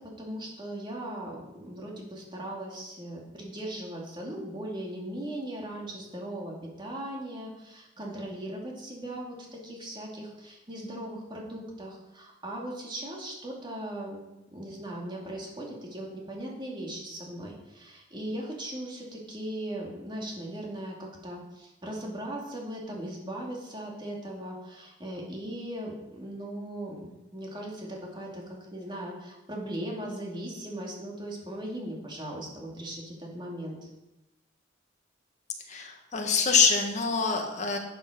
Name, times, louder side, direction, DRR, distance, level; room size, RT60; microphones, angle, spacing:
voice 1, 0.2-9.3 9.6-14.2 14.5-28.4 28.7-33.8, right 1 dB, 25° right, -2 dB, 2.8 m, -38 dB
voice 2, 35.7-37.8, left 5 dB, 40° left, 2 dB, 1.7 m, -25 dB
12.0 x 8.0 x 5.2 m, 0.97 s
head